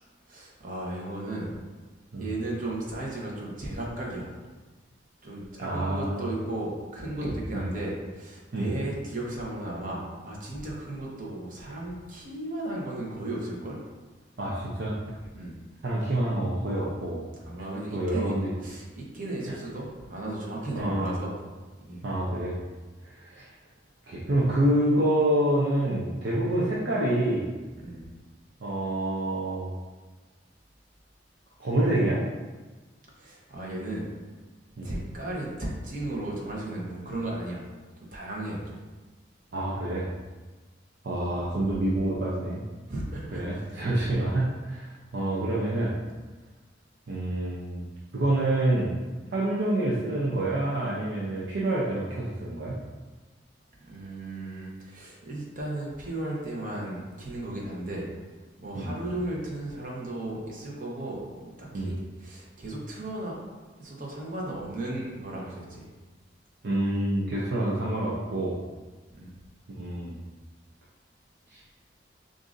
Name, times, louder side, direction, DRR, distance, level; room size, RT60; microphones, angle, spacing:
voice 1, 0.3-1.5 2.2-4.3 5.2-13.8 15.3-15.6 17.4-18.3 18.6-21.3 21.8-22.1 27.8-28.0 33.2-34.1 34.8-37.6 38.1-38.8 42.9-43.7 53.8-58.1 58.6-63.4 63.8-65.9 69.1-69.3, right 1 dB, 45° right, -4 dB, 1.1 m, -35 dB
voice 2, 5.6-6.2 7.5-7.6 8.5-8.7 14.4-15.0 15.8-17.2 17.9-18.5 19.5-19.6 20.7-21.1 22.0-22.6 23.0-23.5 24.1-27.5 28.6-29.7 31.6-32.2 34.8-34.9 39.5-40.1 41.0-42.6 43.3-46.0 47.1-47.8 48.1-49.0 49.3-52.8 58.7-59.0 61.7-61.9 66.6-68.6 69.8-70.2 71.5-71.6, right 1 dB, 70° right, -6 dB, 0.6 m, -27 dB
6.5 x 2.6 x 2.6 m, 1.3 s
head